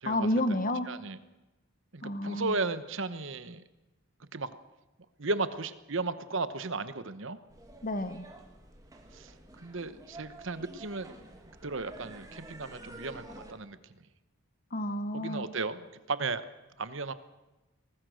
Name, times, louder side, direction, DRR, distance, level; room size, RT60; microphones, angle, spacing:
voice 1, 0.0-0.9 2.0-2.6 7.8-8.2 14.7-15.4, left 1 dB, 40° left, 11 dB, 1.3 m, -30 dB
voice 2, 0.9-1.2 1.9-3.6 4.3-4.5 5.2-7.4 9.1-9.3 9.6-11.1 11.6-13.8 15.1-16.4 16.8-17.1, right 3 dB, 55° right, 13 dB, 1.1 m, -35 dB
sound 1, 7.5-13.5, right 1 dB, 15° right, 2.4 m, -50 dB
23.5 x 19.5 x 6.5 m, 1.1 s
head